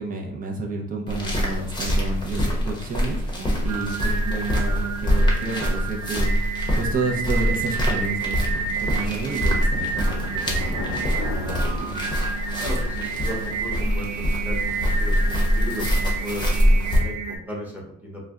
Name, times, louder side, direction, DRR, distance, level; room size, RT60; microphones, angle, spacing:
voice 1, 0.0-3.2 3.6-6.3 6.8-12.0, right 3 dB, 30° right, 1 dB, 0.6 m, -30 dB
sound 1, 1.1-17.0, equal, 15° left, 0.8 m, -24 dB
Singing, 3.3-17.4, right 5 dB, 80° right, 0.5 m, -30 dB
sound 2, 8.7-16.7, left 3 dB, 75° left, 0.5 m, -40 dB
voice 2, 12.6-18.2, equal, 5° right, -3 dB, 1.0 m, -35 dB
2.5 x 2.2 x 3.5 m, 0.67 s
cardioid pair, 90°, 30 cm